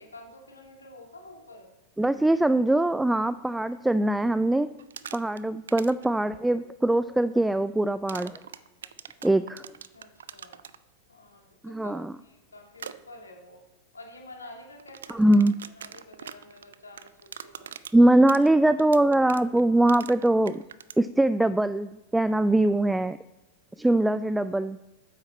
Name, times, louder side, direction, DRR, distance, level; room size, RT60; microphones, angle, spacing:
voice 1, 0.0-1.7 5.3-5.5 9.9-10.6 11.1-13.6 13.9-15.4 15.8-17.7, left 2 dB, 75° left, 1 dB, 2.7 m, -49 dB
voice 2, 2.0-4.7 5.1-8.4 9.2-9.6 11.6-12.1 15.1-15.6 17.9-20.6 21.0-23.2 23.8-24.8, right 1 dB, 5° right, 15 dB, 0.3 m, -22 dB
sound 1, 4.8-5.4 5.7-6.1 8.1-10.8 12.8-12.9 14.8-21.0, right 8 dB, 65° right, 0.5 m, -42 dB
13.5 x 9.6 x 4.3 m, 1.0 s
figure-of-eight pair, 90°, 0 cm